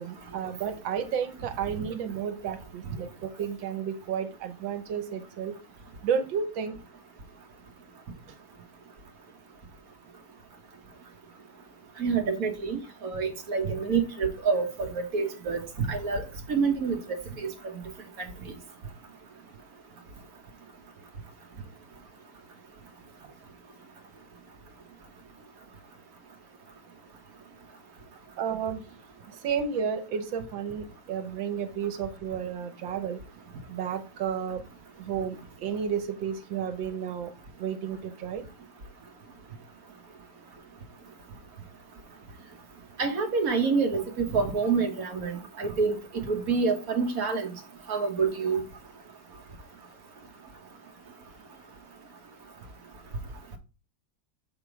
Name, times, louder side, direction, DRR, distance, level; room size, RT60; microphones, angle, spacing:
voice 1, 0.0-5.6 6.0-6.7 28.4-28.8 29.4-33.2 33.7-34.6 35.0-37.3 37.6-38.4, right 7 dB, 85° right, 1.6 m, -32 dB
voice 2, 12.0-16.2 16.5-17.0 17.4-17.5 43.0-46.0 46.3-47.5 47.9-48.6, right 5 dB, 50° right, 1.4 m, -27 dB
6.9 x 3.6 x 4.8 m
omnidirectional pair, 2.1 m